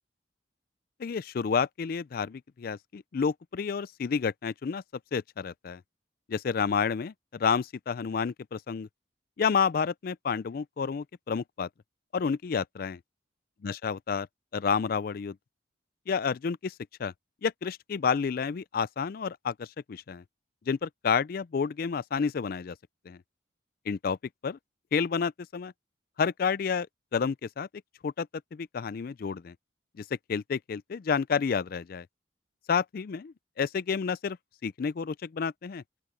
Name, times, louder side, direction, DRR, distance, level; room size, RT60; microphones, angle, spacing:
voice 1, 1.0-4.8 5.1-5.8 6.3-8.9 9.4-11.7 12.1-13.0 13.6-14.3 14.5-15.4 16.1-16.7 17.0-17.1 17.4-20.2 20.7-22.8 23.1-23.2 23.9-24.2 24.4-24.6 24.9-25.7 26.2-26.9 27.1-27.7 28.0-29.5 30.0-32.1 32.7-34.4 34.6-35.8, left 6 dB, 50° left, 0.4 m, -30 dB
open air
head